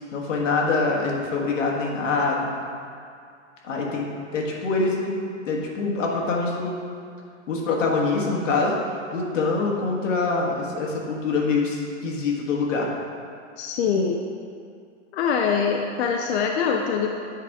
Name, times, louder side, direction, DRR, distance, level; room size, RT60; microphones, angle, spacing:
voice 1, 0.1-2.5 3.6-5.1 5.4-6.8 7.5-8.8 9.1-12.9, left 3 dB, 90° left, -1 dB, 1.5 m, -24 dB
voice 2, 13.6-14.2 15.1-17.2, left 6 dB, 60° left, 2 dB, 0.6 m, -23 dB
8.3 x 5.0 x 3.6 m, 2.3 s
hypercardioid pair, 145°, 37 cm